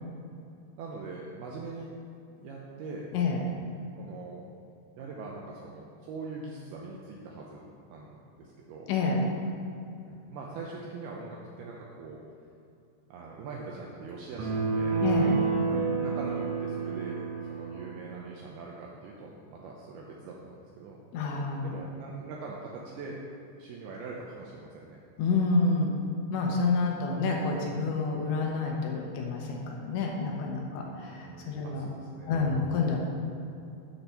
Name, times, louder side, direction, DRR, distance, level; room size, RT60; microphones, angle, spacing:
voice 1, 0.8-1.9 2.4-3.1 3.9-4.5 5.0-8.9 10.1-12.2 13.1-15.0 15.6-17.2 17.5-21.0 21.6-23.2 23.6-25.0 28.6-28.8 30.9-32.5, right 4 dB, 85° right, -2 dB, 2.3 m, -42 dB
voice 2, 3.1-3.5 8.9-9.2 15.0-15.4 21.1-21.7 25.2-25.9 26.3-31.9 32.3-33.0, left 3 dB, 80° left, 0 dB, 3.1 m, -28 dB
sound 1, 14.4-17.9, right 4 dB, 65° right, 2.0 m, -29 dB
8.3 x 6.8 x 5.7 m, 2.7 s
omnidirectional pair, 5.4 m